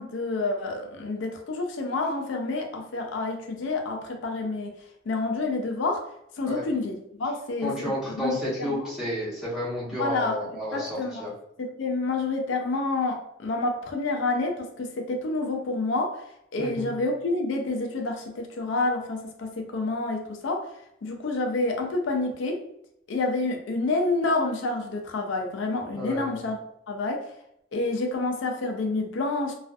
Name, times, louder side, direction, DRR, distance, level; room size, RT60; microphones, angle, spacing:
voice 1, 0.0-4.8 5.1-6.0 6.4-8.9 10.0-11.3 11.6-16.2 16.5-20.7 21.0-22.6 23.1-26.6 26.9-27.3 27.7-29.5, left 2 dB, 80° left, 3 dB, 0.4 m, -28 dB
voice 2, 7.6-10.9 11.2-11.3 16.6-16.9 25.9-26.4, left 1 dB, 5° right, -9 dB, 1.0 m, -31 dB
2.5 x 2.4 x 2.2 m, 0.77 s
head